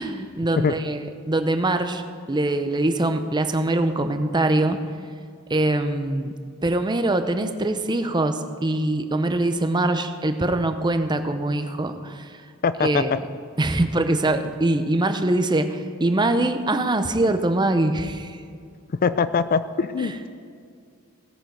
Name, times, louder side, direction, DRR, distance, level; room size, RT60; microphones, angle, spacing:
voice 1, 0.0-2.0 2.3-4.8 5.5-6.3 6.6-12.3 12.8-13.1 13.6-18.4 20.0-20.3, right 2 dB, 20° right, 8 dB, 0.7 m, -23 dB
voice 2, 12.6-13.2 19.0-20.3, left 5 dB, 40° left, 14 dB, 0.4 m, -22 dB
17.0 x 8.8 x 5.3 m, 2.3 s
head